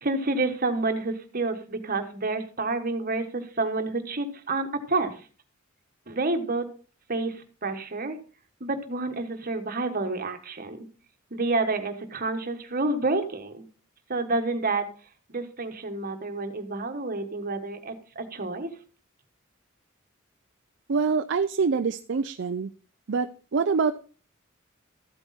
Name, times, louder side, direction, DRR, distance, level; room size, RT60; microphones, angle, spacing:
voice 1, 0.0-5.1 6.1-6.7 7.1-8.2 8.6-10.8 11.3-13.6 14.1-14.9 15.3-18.7, right 3 dB, 45° right, 7 dB, 1.5 m, -29 dB
voice 2, 20.9-22.7 23.1-23.9, right 5 dB, 60° right, 10 dB, 0.5 m, -25 dB
14.0 x 8.1 x 4.3 m, 0.39 s
head